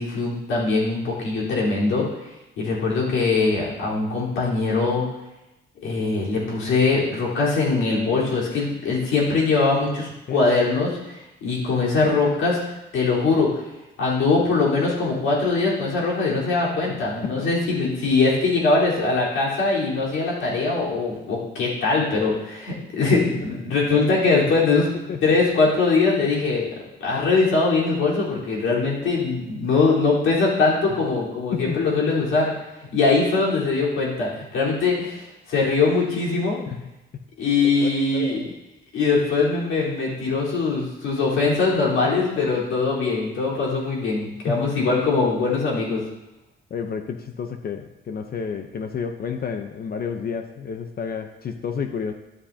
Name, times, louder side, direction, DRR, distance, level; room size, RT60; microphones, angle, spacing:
voice 1, 0.0-2.0 2.6-5.0 5.8-12.6 12.9-13.6 14.0-24.9 25.2-26.7 27.0-32.5 32.9-36.6 37.4-38.4 38.9-46.0, left 3 dB, 80° left, -6 dB, 4.2 m, -22 dB
voice 2, 16.9-17.5 23.9-24.1 25.1-25.4 30.9-31.0 31.5-32.1 36.7-36.8 37.8-38.5 42.0-42.5 44.5-44.6 46.7-52.1, left 6 dB, 50° left, 6 dB, 0.9 m, -31 dB
12.5 x 10.0 x 2.9 m, 0.97 s
cardioid pair, 90°, 20 cm